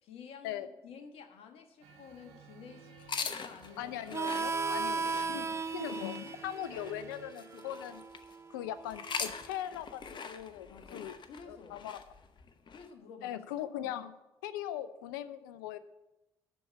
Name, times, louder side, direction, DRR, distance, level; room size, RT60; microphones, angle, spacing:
voice 1, 0.0-4.0 4.6-5.5 10.7-11.9 12.7-13.3, left 6 dB, 60° left, 7 dB, 1.3 m, -51 dB
Male speech man speaking, 1.8-7.3, right 4 dB, 70° right, 1.2 m, -56 dB
sound 1, 3.0-8.3 8.9-12.9, left 6 dB, 45° left, 0.9 m, -43 dB
voice 2, 3.8-5.0 5.3-8.0 8.5-11.1 11.5-12.0 13.2-14.1 14.4-15.8, left 11 dB, 75° left, 14 dB, 0.5 m, -40 dB
Harmonica, 4.1-9.4, right 4 dB, 25° right, 0.5 m, -37 dB
12.0 x 4.7 x 7.9 m, 1.0 s
figure-of-eight pair, 45°, 11 cm